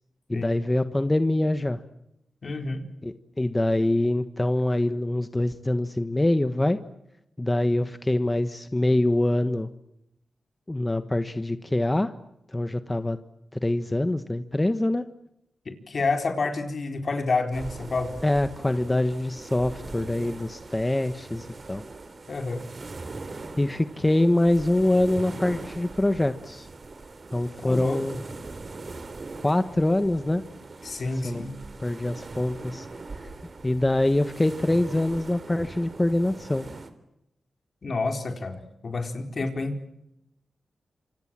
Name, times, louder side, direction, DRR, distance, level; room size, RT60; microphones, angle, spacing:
voice 1, 0.3-1.8 3.0-6.8 7.4-9.7 10.7-12.1 12.5-13.2 13.5-15.0 18.2-21.8 23.6-26.7 27.3-28.2 29.4-30.4 31.2-31.5 31.8-32.9 33.6-36.7, left 1 dB, 20° left, 10 dB, 1.3 m, -24 dB
voice 2, 2.4-2.9 15.7-18.1 22.3-22.7 27.6-28.0 30.8-31.5 37.8-39.8, left 3 dB, 60° left, 5 dB, 4.4 m, -29 dB
sound 1, 17.5-36.9, right 3 dB, 50° right, 3.4 m, -41 dB
27.0 x 26.0 x 7.6 m, 0.83 s
cardioid pair, 60°, 0 cm